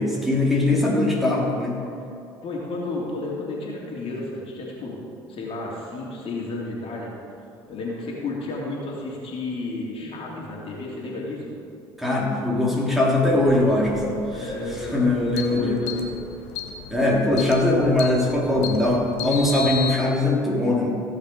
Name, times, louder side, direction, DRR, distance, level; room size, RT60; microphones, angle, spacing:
voice 1, 0.0-1.8 10.3-10.4 12.0-14.2 14.8-15.8 16.9-20.9, left 2 dB, ahead, -4 dB, 3.0 m, -21 dB
voice 2, 2.4-5.0 5.3-7.1 7.7-11.4 14.3-16.1, left 2 dB, 50° left, -4 dB, 3.0 m, -32 dB
sound 1, 13.3-19.9, left 7 dB, 70° left, 1.2 m, -35 dB
17.0 x 5.7 x 5.3 m, 2.6 s
hypercardioid pair, 65°, 12 cm